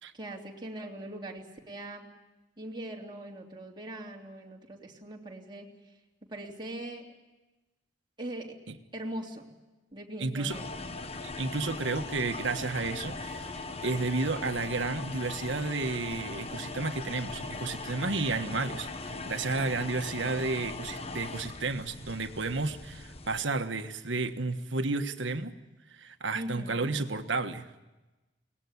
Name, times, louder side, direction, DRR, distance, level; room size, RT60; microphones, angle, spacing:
voice 1, 0.1-2.1 2.6-5.7 6.3-7.1 8.2-8.6 8.9-9.5 9.9-10.7 26.3-26.9, right 1 dB, 25° right, -1 dB, 3.2 m, -41 dB
voice 2, 10.2-10.6 11.2-25.5 25.9-27.7, right 3 dB, 90° right, 8 dB, 1.5 m, -32 dB
sound 1, 10.5-23.4, left 3 dB, 35° left, 1.2 m, -40 dB
23.0 x 19.5 x 9.7 m, 1.1 s
head